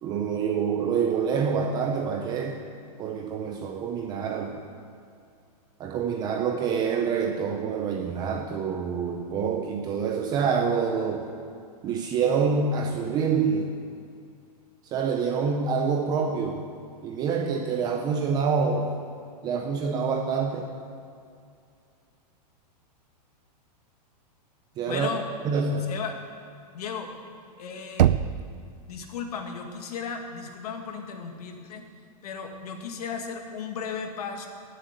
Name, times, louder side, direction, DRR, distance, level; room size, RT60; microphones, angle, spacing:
voice 1, 0.0-2.6 3.0-4.6 5.8-11.3 11.8-13.7 14.9-16.7 17.0-18.9 19.4-20.7 24.8-25.1 25.4-25.9, right 5 dB, 20° right, 3 dB, 0.7 m, -26 dB
voice 2, 24.9-25.2 25.9-26.2 26.7-27.1 27.6-28.1 28.9-31.8 32.2-34.5, left 6 dB, 65° left, 4 dB, 2.1 m, -35 dB
Knock, 28.0-28.9, right 11 dB, 90° right, 0.5 m, -23 dB
14.5 x 7.6 x 9.4 m, 2.4 s
supercardioid pair, 160°, 21 cm